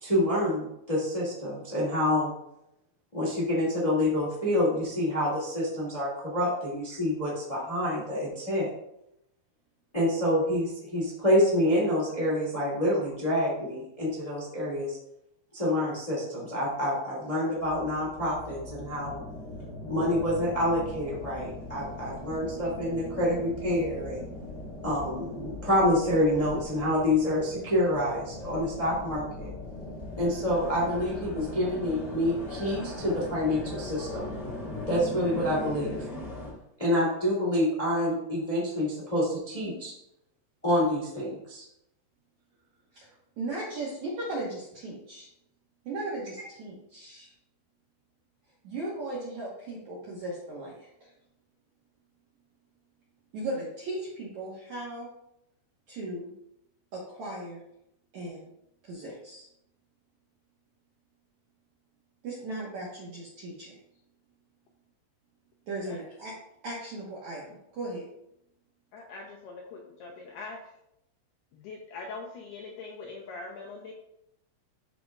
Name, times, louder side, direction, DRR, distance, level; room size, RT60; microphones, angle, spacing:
voice 1, 0.0-2.3 3.1-8.7 9.9-15.0 15.5-19.2 19.9-24.2 24.8-29.5 30.2-34.2 34.9-35.9 36.8-39.9 40.6-41.6, left 1 dB, 35° left, -6 dB, 0.5 m, -27 dB
sound 1, 17.6-36.5, left 2 dB, 15° left, 1.4 m, -39 dB
voice 2, 43.4-45.3 45.8-47.3 48.6-51.1 53.3-55.1 55.9-56.3 56.9-57.6 58.1-58.5 58.8-59.5 62.2-63.8 65.7-66.4 66.6-68.0, right 2 dB, 70° right, -5 dB, 1.7 m, -37 dB
voice 3, 68.9-70.7 71.5-73.9, left 3 dB, 85° left, -1 dB, 2.4 m, -42 dB
13.0 x 5.1 x 2.4 m, 0.80 s
omnidirectional pair, 5.5 m